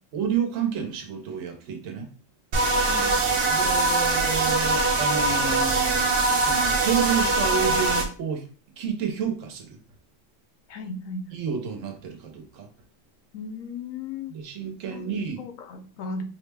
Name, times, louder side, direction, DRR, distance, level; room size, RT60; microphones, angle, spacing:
voice 1, 0.1-2.1 3.5-8.5 8.8-9.8 11.3-12.7 14.3-15.4, right 7 dB, 80° right, 1.1 m, -30 dB
sound 1, 2.5-8.1, right 2 dB, 50° right, 0.8 m, -22 dB
voice 2, 2.8-3.2 10.7-11.4 13.3-14.4 14.9-16.2, left 3 dB, 90° left, 1.1 m, -36 dB
4.7 x 2.1 x 3.3 m
omnidirectional pair, 1.3 m